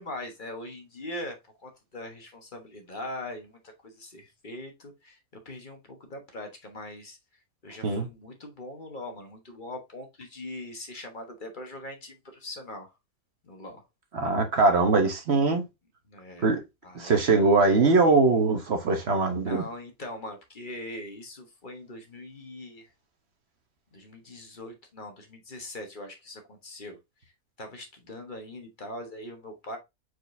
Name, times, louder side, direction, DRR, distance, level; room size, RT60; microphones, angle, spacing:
voice 1, 0.0-5.2 5.4-7.2 7.6-12.9 13.4-13.8 16.1-16.5 16.8-17.6 19.4-22.9 23.9-27.0 27.6-29.8, left 1 dB, 35° left, 1.2 m, -41 dB
voice 2, 14.1-15.6 16.4-16.6 16.9-19.6, right 3 dB, 50° right, 1.1 m, -22 dB
4.8 x 4.2 x 2.6 m
omnidirectional pair, 1.5 m